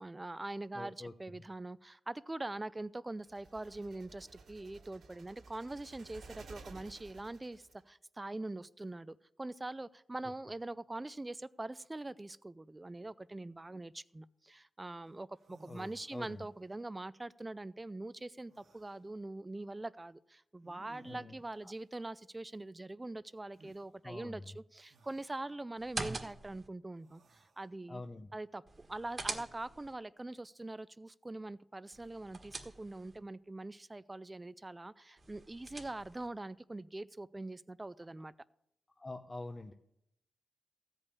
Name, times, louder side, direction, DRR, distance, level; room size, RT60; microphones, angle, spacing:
voice 1, 0.0-28.0 28.3-38.3, right 2 dB, 20° right, 17 dB, 0.4 m, -43 dB
voice 2, 0.7-1.1 15.7-16.5 21.0-21.4 21.6-21.7 24.0-24.5 27.9-28.3 39.0-39.7, left 2 dB, 25° left, 6 dB, 0.7 m, -45 dB
sound 1, 3.2-7.8, right 4 dB, 90° right, 2.0 m, -55 dB
sound 2, 15.1-15.2 15.4-16.6 18.4-19.0 20.6-21.5 23.5-23.8 24.8-25.4 26.9-27.7, right 3 dB, 70° right, 1.4 m, -62 dB
sound 3, 25.8-26.7 28.7-29.9 31.9-33.2 35.2-36.3, right 3 dB, 35° right, 1.4 m, -44 dB
15.5 x 5.4 x 8.3 m, 0.80 s
wide cardioid pair, 100°, 0 cm